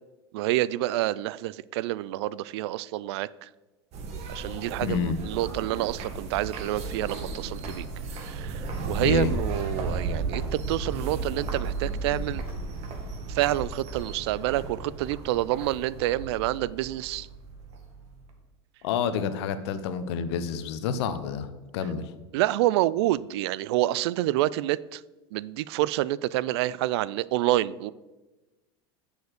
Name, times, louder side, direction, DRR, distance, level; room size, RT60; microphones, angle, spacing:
voice 1, 0.3-3.5 4.3-7.9 8.1-12.4 13.3-17.3 22.3-25.0 25.3-27.9, right 15 dB, 70° right, 20 dB, 0.4 m, -28 dB
sound 1, 3.9-18.3, right 3 dB, 50° right, 1.9 m, -34 dB
voice 2, 4.8-5.2 9.0-9.3 18.8-21.5 21.7-22.1, left 7 dB, 70° left, 11 dB, 0.9 m, -28 dB
7.0 x 6.5 x 6.5 m, 1.1 s
hypercardioid pair, 100°, 14 cm